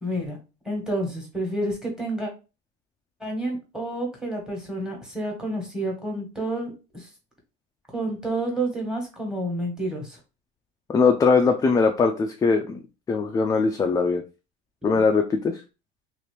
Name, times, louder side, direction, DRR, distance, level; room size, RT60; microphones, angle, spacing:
voice 1, 0.0-0.4 0.6-2.3 3.2-7.1 7.9-10.2, right 1 dB, 5° right, 0 dB, 1.3 m, -29 dB
voice 2, 10.9-12.8 13.1-14.2 14.8-15.6, left 4 dB, 15° left, 4 dB, 0.3 m, -21 dB
2.7 x 2.5 x 3.2 m, 0.30 s
cardioid pair, 125°, 21 cm